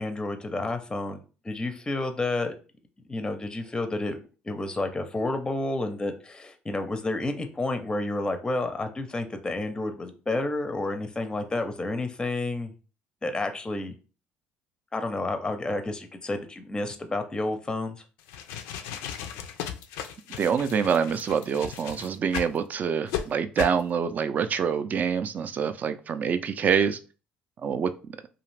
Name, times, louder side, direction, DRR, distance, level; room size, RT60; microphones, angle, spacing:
voice 1, 0.0-2.5 3.1-4.2 4.4-12.7 13.2-13.9 14.9-18.0, left 2 dB, 20° left, 7 dB, 0.5 m, -30 dB
sound 1, 18.2-22.6 23.1-23.2 23.6-23.8, left 9 dB, 85° left, 0.3 m, -35 dB
voice 2, 20.4-27.0 27.6-27.9, right 7 dB, 45° right, 11 dB, 0.3 m, -26 dB
2.5 x 2.4 x 3.1 m, 0.36 s
supercardioid pair, 80°, 4 cm